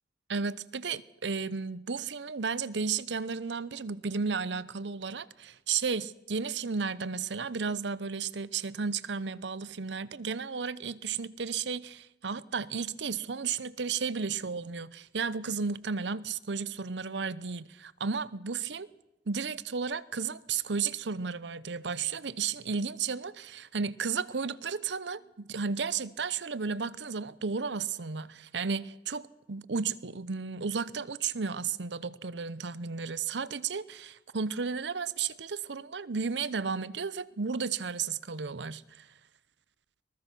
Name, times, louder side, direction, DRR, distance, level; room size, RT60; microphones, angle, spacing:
voice 1, 0.3-18.9 19.3-39.1, right 5 dB, 75° right, 0.8 m, -33 dB
22.5 x 20.5 x 6.1 m
head